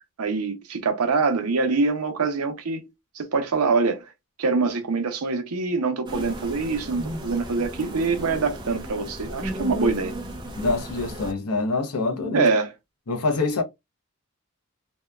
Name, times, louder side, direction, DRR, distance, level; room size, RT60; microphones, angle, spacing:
voice 1, 0.2-2.9 3.1-4.1 4.4-10.1 12.3-12.7, right 4 dB, 90° right, 0.7 m, -24 dB
sound 1, 6.1-11.3, equal, 20° right, 0.4 m, -34 dB
voice 2, 10.6-12.5 13.1-13.6, left 3 dB, 90° left, 0.7 m, -25 dB
2.8 x 2.2 x 2.3 m
head